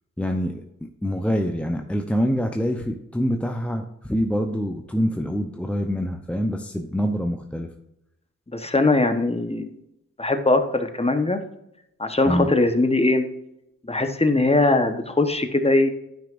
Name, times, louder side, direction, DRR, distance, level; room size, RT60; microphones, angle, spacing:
voice 1, 0.2-7.7 12.2-12.5, equal, 5° left, 3 dB, 0.8 m, -25 dB
voice 2, 8.5-9.8 10.2-11.4 12.0-13.2 13.8-15.9, left 2 dB, 20° left, 7 dB, 1.1 m, -21 dB
10.5 x 5.8 x 2.6 m, 0.82 s
cardioid pair, 50°, 31 cm